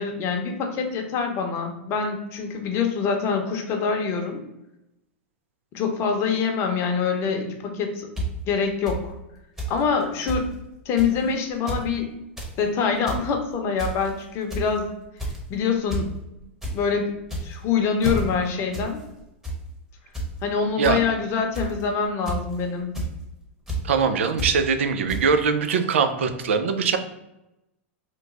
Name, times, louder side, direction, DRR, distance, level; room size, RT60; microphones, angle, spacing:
voice 1, 0.0-4.4 5.7-8.1 8.5-9.1 9.7-10.5 10.9-12.1 12.6-14.9 15.5-16.1 16.7-17.1 17.4-19.0 20.4-22.9, left 5 dB, 40° left, 3 dB, 0.8 m, -25 dB
sound 1, 8.2-8.3 8.9-9.0 9.6-9.7 10.0-10.1 10.3-10.4 11.0-11.2 11.5-11.8 12.2-12.5 12.9-13.2 13.8-14.1 14.5-14.8 15.2-15.5 15.9-16.0 16.4-16.7 17.2-17.6 18.0-18.2 18.7-18.9 19.2-19.6 20.1-20.3 20.8-20.9 21.5-21.8 22.2-22.5 22.9-23.1 23.7-23.8 24.4-24.5 25.1-25.2, right 1 dB, 5° right, 1.0 m, -29 dB
voice 2, 23.8-27.0, right 5 dB, 80° right, 8 dB, 0.5 m, -22 dB
3.1 x 2.2 x 3.7 m, 0.90 s
hypercardioid pair, 115°, 7 cm